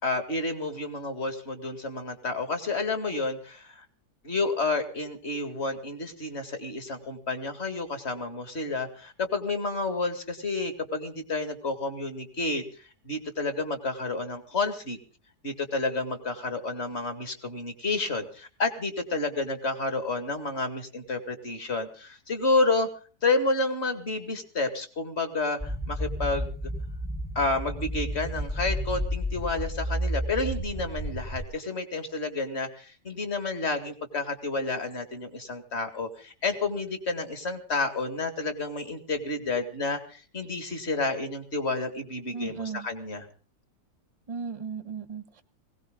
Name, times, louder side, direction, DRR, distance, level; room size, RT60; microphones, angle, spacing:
voice 1, 0.0-3.9 4.2-15.0 15.4-22.9 23.2-26.5 27.4-43.3, left 3 dB, 40° left, 8 dB, 2.3 m, -30 dB
sound 1, 25.6-31.5, equal, 5° left, 0.8 m, -31 dB
voice 2, 42.3-42.9 44.3-45.4, right 5 dB, 25° right, 10 dB, 1.0 m, -36 dB
20.0 x 18.0 x 3.8 m, 0.38 s
omnidirectional pair, 1.8 m